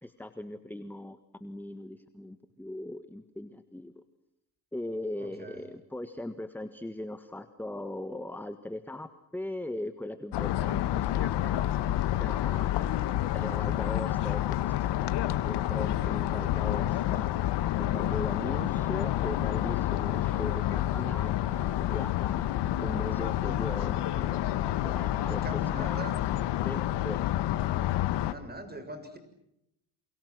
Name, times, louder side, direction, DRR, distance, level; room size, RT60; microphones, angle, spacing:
voice 1, 0.0-4.0 4.7-11.6 12.1-13.0 13.3-17.3 17.8-22.5 22.8-25.4 25.8-26.1 26.6-27.2, left 1 dB, 5° left, 9 dB, 1.7 m, -39 dB
voice 2, 5.2-5.7 25.3-26.2 28.3-29.2, right 1 dB, 20° right, 9 dB, 7.0 m, -42 dB
sound 1, 10.3-28.3, left 13 dB, 70° left, 1.8 m, -29 dB
28.5 x 28.0 x 6.3 m, 0.82 s
supercardioid pair, 85°, 42 cm